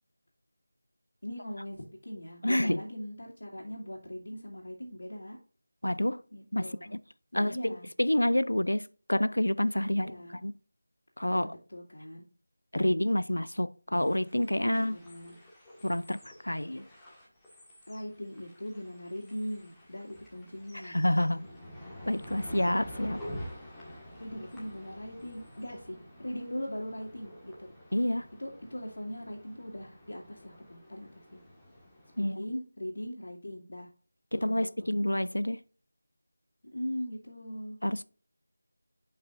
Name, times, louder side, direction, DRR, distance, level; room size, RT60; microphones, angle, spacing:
voice 1, 1.2-5.4 6.3-6.9 7.3-7.9 9.9-10.4 11.3-12.2 14.8-15.4 17.9-21.0 24.2-27.7 28.4-31.4 32.4-33.9 34.3-34.9 36.7-37.8, equal, 65° left, 2.1 m, -40 dB
voice 2, 2.4-2.8 5.8-6.2 6.5-6.7 7.3-10.1 10.4-10.5 11.2-11.5 12.7-15.0 15.8-16.8 20.8-21.5 22.1-23.2 27.9-28.3 32.2-32.4 34.3-35.6 37.8-38.0, left 1 dB, 85° left, 0.5 m, -28 dB
sound 1, 13.9-32.3, equal, 5° left, 1.5 m, -48 dB
10.5 x 5.5 x 2.5 m
figure-of-eight pair, 170°, 0 cm